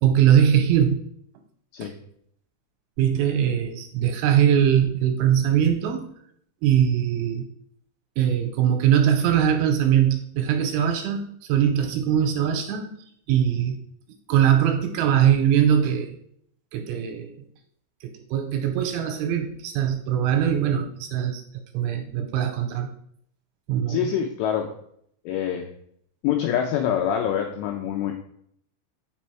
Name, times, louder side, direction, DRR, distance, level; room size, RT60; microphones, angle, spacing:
voice 1, 0.0-1.0 3.0-6.1 6.6-7.4 8.2-11.2 11.5-12.9 13.3-13.8 14.3-16.1 16.7-17.3 18.3-21.4 21.7-22.9 23.7-24.0, right 9 dB, 85° right, 5 dB, 2.9 m, -21 dB
voice 2, 23.9-24.7 25.3-25.7 26.2-28.1, left 9 dB, 85° left, 2 dB, 2.5 m, -25 dB
7.9 x 6.1 x 4.5 m, 0.67 s
omnidirectional pair, 5.9 m